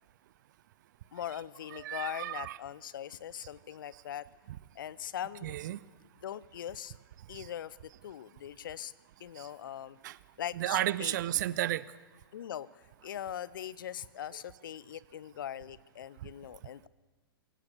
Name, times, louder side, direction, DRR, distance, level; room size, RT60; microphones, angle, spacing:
voice 1, 1.1-4.3 4.7-5.6 6.2-6.9 7.3-8.9 9.2-10.0 10.4-11.2 12.3-16.9, left 10 dB, 60° left, 20 dB, 0.8 m, -41 dB
voice 2, 1.7-2.6 5.4-5.8 7.3-7.5 10.0-10.2 10.6-11.8, right 14 dB, 50° right, 19 dB, 0.7 m, -32 dB
23.0 x 17.5 x 6.9 m, 1.3 s
figure-of-eight pair, 105°, 13 cm